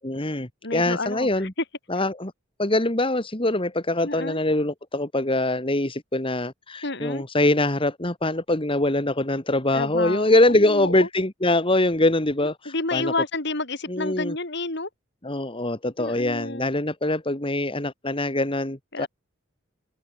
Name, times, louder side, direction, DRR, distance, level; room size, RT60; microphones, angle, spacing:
voice 1, 0.0-1.5 1.9-2.3 2.6-13.1 13.9-14.3 15.2-19.1, left 1 dB, 25° left, 2.4 m, -23 dB
voice 2, 0.6-1.5 4.0-4.4 6.8-7.2 9.7-11.1 12.6-14.9 16.0-16.7 18.9-19.1, left 3 dB, 60° left, 4.9 m, -30 dB
head